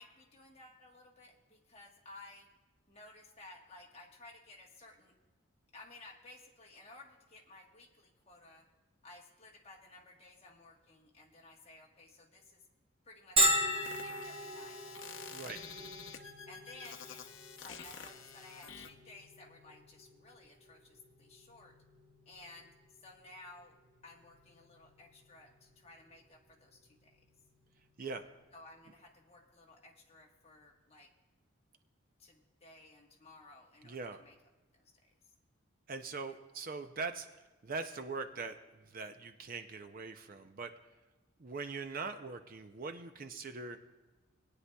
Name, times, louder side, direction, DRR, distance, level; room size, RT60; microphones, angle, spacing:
voice 1, 0.0-2.5 2.9-5.1 5.7-8.7 9.0-12.6 13.0-14.8 15.4-15.9 16.5-21.7 22.2-23.8 24.0-27.2 28.5-31.1 32.2-34.3 34.7-34.9, left 2 dB, 30° left, -1 dB, 1.3 m, -56 dB
Bell, 13.4-28.8, right 1 dB, 25° right, 0.9 m, -39 dB
sound 1, 13.7-18.9, left 7 dB, 60° left, 0.7 m, -49 dB
voice 2, 15.3-15.6 28.0-28.3 33.8-34.2 35.9-40.7 41.4-43.8, right 4 dB, 40° right, 7 dB, 0.5 m, -42 dB
20.0 x 9.7 x 2.3 m, 1.2 s
head